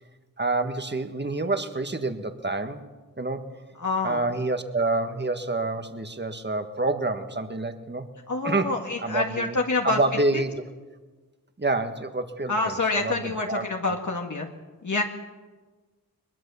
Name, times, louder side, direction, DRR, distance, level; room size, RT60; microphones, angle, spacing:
voice 1, 0.4-2.9 3.2-3.5 4.0-8.1 8.4-9.5 9.8-10.6 11.6-13.6, right 2 dB, 30° right, 8 dB, 1.7 m, -28 dB
voice 2, 3.8-4.2 8.3-10.4 12.5-14.5 14.8-15.0, left 3 dB, 55° left, 1 dB, 1.9 m, -27 dB
22.0 x 21.5 x 7.1 m, 1.3 s
wide cardioid pair, 70°, 35 cm